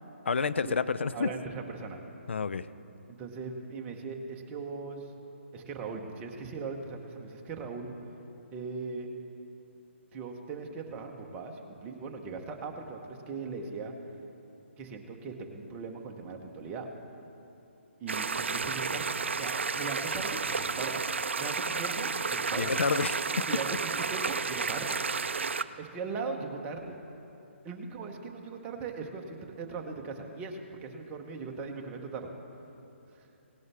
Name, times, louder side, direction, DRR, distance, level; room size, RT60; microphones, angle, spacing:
voice 1, 0.3-1.3 2.3-2.7 22.6-23.1, left 5 dB, 65° left, 14 dB, 0.4 m, -28 dB
voice 2, 1.1-2.0 3.1-5.1 5.5-7.9 8.5-9.1 10.1-13.9 14.8-16.9 18.0-21.0 21.4-22.8 23.5-25.0 25.8-27.0 27.6-32.3 33.1-33.3, right 4 dB, 15° right, 2 dB, 1.0 m, -39 dB
sound 1, 18.1-25.6, right 5 dB, 65° right, 0.4 m, -32 dB
18.0 x 10.5 x 3.5 m, 2.9 s
figure-of-eight pair, 140°, 7 cm